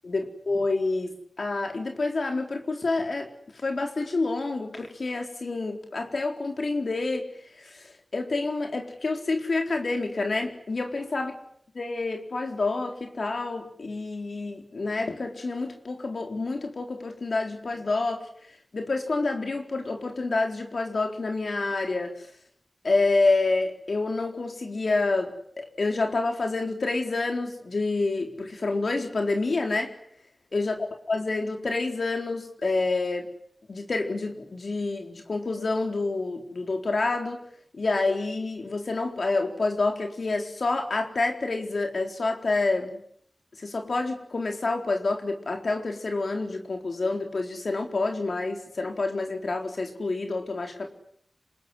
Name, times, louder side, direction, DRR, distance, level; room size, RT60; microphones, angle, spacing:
voice 1, 0.0-3.3 3.6-7.3 7.6-11.3 11.8-18.3 18.7-22.1 22.8-29.9 30.5-30.8 31.1-33.3 33.7-37.4 37.7-43.0 43.6-50.9, left 3 dB, 80° left, 3 dB, 4.2 m, -28 dB
26.5 x 21.0 x 9.9 m, 0.66 s
wide cardioid pair, 60°, 0 cm